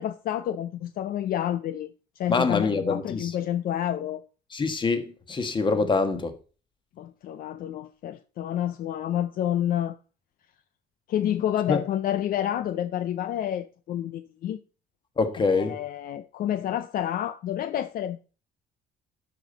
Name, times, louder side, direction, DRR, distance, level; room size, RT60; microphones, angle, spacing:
voice 1, 0.0-1.9 2.2-4.2 5.7-5.9 7.0-10.0 11.1-14.6 15.5-18.2, left 11 dB, 60° left, 0.5 m, -29 dB
voice 2, 2.3-3.3 4.5-6.3 11.7-11.8 15.2-15.8, left 4 dB, 30° left, 1.4 m, -25 dB
12.0 x 5.1 x 3.9 m
cardioid pair, 110°, 17 cm